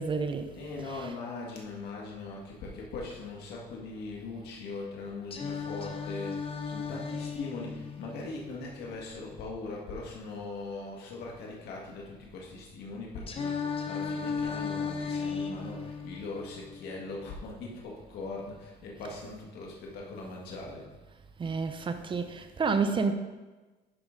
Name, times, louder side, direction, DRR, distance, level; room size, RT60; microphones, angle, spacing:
voice 1, 0.0-0.5 0.9-1.1 19.0-19.2 21.4-23.1, right 4 dB, 30° right, 0.8 m, -30 dB
voice 2, 0.5-20.9, left 3 dB, 75° left, 1.8 m, -40 dB
Singing, 5.3-9.3 13.3-17.3, left 5 dB, 35° left, 0.9 m, -36 dB
11.0 x 4.7 x 3.9 m
cardioid pair, 110°, 17 cm